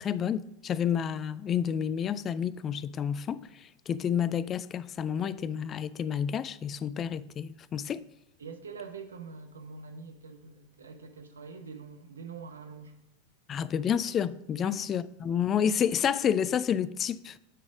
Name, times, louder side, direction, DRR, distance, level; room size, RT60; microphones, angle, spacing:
voice 1, 0.0-8.0 13.5-17.4, left 8 dB, 30° left, 0.3 m, -30 dB
voice 2, 8.4-13.0 14.6-14.8, right 5 dB, 80° right, 0.9 m, -44 dB
9.1 x 4.2 x 4.9 m
hypercardioid pair, 90°, 0 cm